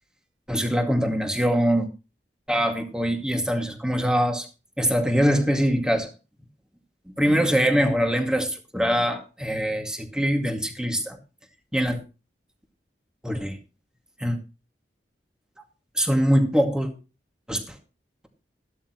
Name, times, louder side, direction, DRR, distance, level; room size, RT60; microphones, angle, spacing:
voice 1, 0.5-1.9 2.5-4.5 4.8-6.1 7.2-11.2 11.7-12.0 13.2-13.6 14.2-14.4 16.0-16.9 17.5-17.8, equal, 5° right, 3 dB, 2.1 m, -23 dB
14.0 x 12.5 x 3.0 m, 0.32 s
head